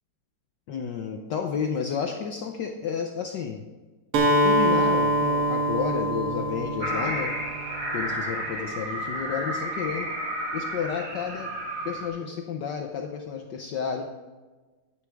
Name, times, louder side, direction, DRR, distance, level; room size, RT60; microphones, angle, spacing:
voice 1, 0.7-3.6 4.4-7.3 7.9-10.1 10.5-11.5 11.8-14.1, left 7 dB, 65° left, 4 dB, 1.2 m, -31 dB
Acoustic guitar, 4.1-8.0, equal, 75° right, 2.2 m, -24 dB
sound 1, 6.8-12.1, right 1 dB, 45° right, 3.5 m, -32 dB
12.0 x 9.6 x 3.5 m, 1.3 s
omnidirectional pair, 2.4 m